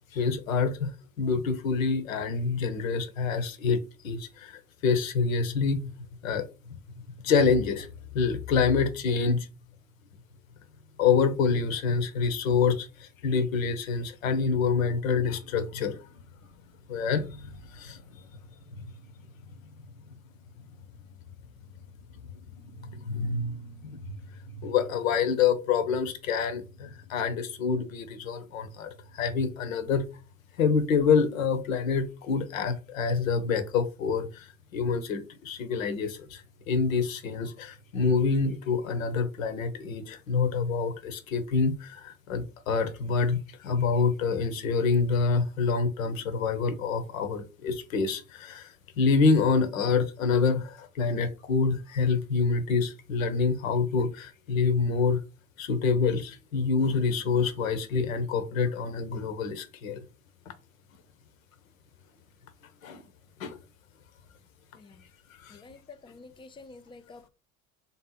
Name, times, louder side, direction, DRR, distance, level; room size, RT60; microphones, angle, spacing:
voice 1, 0.1-5.9 6.2-6.4 7.2-7.9 8.1-9.5 11.0-16.0 16.9-18.0 18.7-18.8 22.6-24.2 24.6-30.1 30.6-48.7 49.0-55.2 55.6-60.0 62.8-63.0 63.4-63.6 65.4-65.6, left 5 dB, 80° left, 0.7 m, -27 dB
voice 2, 65.5-67.3, left 3 dB, 15° left, 0.3 m, -49 dB
3.5 x 2.7 x 4.0 m
hypercardioid pair, 65°, 40 cm